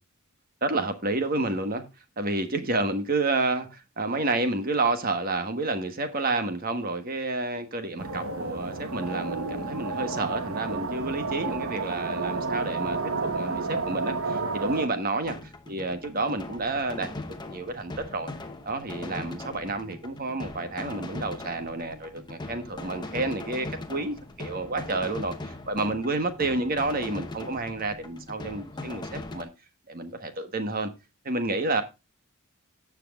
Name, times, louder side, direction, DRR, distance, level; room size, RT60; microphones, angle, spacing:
voice 1, 0.6-1.8 2.2-15.3 15.7-18.3 18.6-29.5 29.9-30.9 31.2-31.8, right 2 dB, 40° right, 1.3 m, -30 dB
sound 1, 8.0-14.9, right 3 dB, 75° right, 1.2 m, -31 dB
sound 2, 15.2-29.4, left 2 dB, 20° left, 0.9 m, -40 dB
17.5 x 6.0 x 2.4 m
head